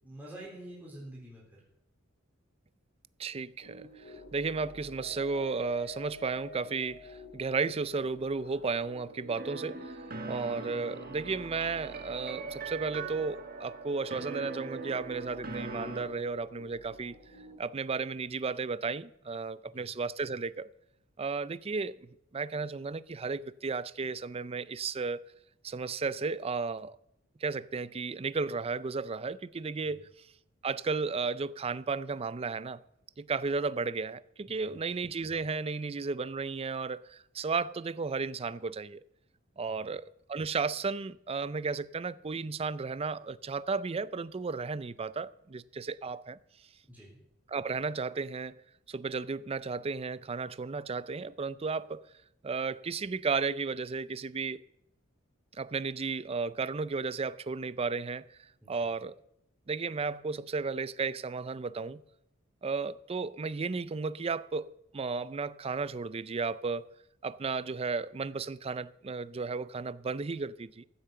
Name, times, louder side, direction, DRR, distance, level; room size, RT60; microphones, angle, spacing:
voice 1, 0.0-1.6 19.7-19.9 29.8-30.0 34.6-34.8 39.7-39.9 46.9-47.2 58.6-58.9, right 1 dB, 10° right, 3.8 m, -48 dB
voice 2, 3.2-9.9 10.3-17.1 17.6-20.7 21.2-25.2 25.6-27.0 27.4-30.1 30.6-32.8 33.2-39.0 39.6-46.4 47.5-48.6 48.9-52.0 52.4-54.6 55.5-58.3 58.7-59.2 59.7-62.0 62.6-66.9 67.2-70.8, right 4 dB, 30° right, 0.4 m, -34 dB
sound 1, 3.6-17.6, left 1 dB, 65° left, 2.2 m, -50 dB
sound 2, 9.4-16.1, right 4 dB, 50° right, 1.6 m, -41 dB
15.0 x 8.4 x 6.7 m
head